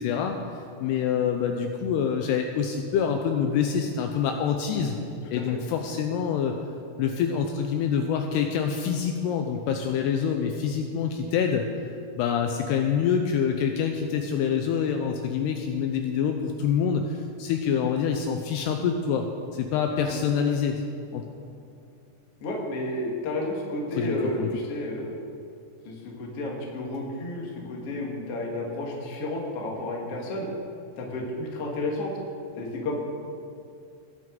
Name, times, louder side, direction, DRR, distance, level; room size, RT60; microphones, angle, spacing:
voice 1, 0.0-5.0 5.3-6.5 7.0-11.7 12.2-19.3 19.5-20.8 21.1-21.2 24.0-24.5, left 7 dB, 80° left, 4 dB, 2.5 m, -26 dB
voice 2, 22.4-25.1 25.8-30.5 31.0-32.1 32.6-33.0, left 1 dB, 55° left, -1 dB, 1.7 m, -31 dB
19.5 x 7.6 x 3.8 m, 2.5 s
omnidirectional pair, 5.1 m